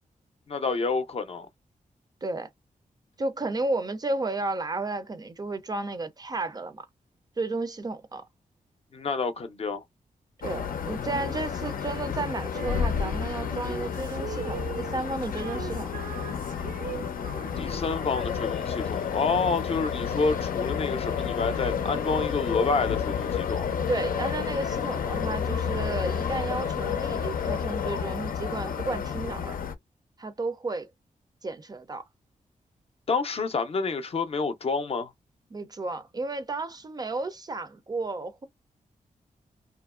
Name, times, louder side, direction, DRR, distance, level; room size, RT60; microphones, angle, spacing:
voice 1, 0.5-1.5 8.9-9.8 17.6-23.7 33.1-35.1, left 4 dB, 45° left, 0.5 m, -28 dB
voice 2, 3.2-6.9 7.4-8.2 10.4-15.9 23.9-29.6 30.2-30.9 31.4-32.0 35.5-38.5, right 2 dB, 30° right, 0.4 m, -32 dB
sound 1, 10.4-29.7, left 7 dB, 90° left, 0.6 m, -30 dB
Female singing, 12.5-19.0, right 7 dB, 80° right, 0.6 m, -41 dB
2.9 x 2.4 x 2.3 m
wide cardioid pair, 150°, 14 cm